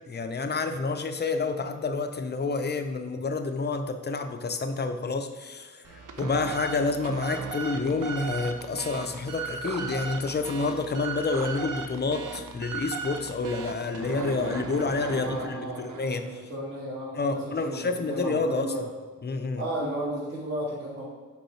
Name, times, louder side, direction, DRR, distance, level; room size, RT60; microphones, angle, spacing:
voice 1, 0.0-16.4 17.1-18.7 19.2-19.6, left 3 dB, 35° left, 7 dB, 0.5 m, -29 dB
sound 1, 5.8-16.4, right 5 dB, 85° right, 0.6 m, -37 dB
voice 2, 15.1-15.8 16.2-18.9 19.6-21.0, right 1 dB, 45° right, -8 dB, 1.6 m, -34 dB
5.4 x 4.7 x 4.5 m, 1.3 s
wide cardioid pair, 120°, 31 cm